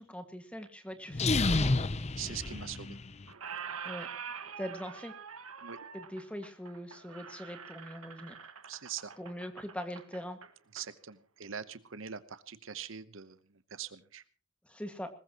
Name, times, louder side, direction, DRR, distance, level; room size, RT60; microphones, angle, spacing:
voice 1, 0.0-1.7 3.8-4.1 4.6-5.1 5.9-8.4 9.2-10.4 14.7-15.1, equal, 5° left, 7 dB, 1.9 m, -42 dB
sound 1, 1.1-3.2, left 3 dB, 30° left, 0.7 m, -30 dB
voice 2, 2.2-3.0 5.6-5.8 8.7-9.1 10.7-14.2, right 8 dB, 60° right, 14 dB, 1.0 m, -43 dB
Squeak, 2.4-3.0 3.3-10.9, right 6 dB, 80° right, 1.7 m, -45 dB
21.5 x 19.5 x 3.0 m, 0.36 s
head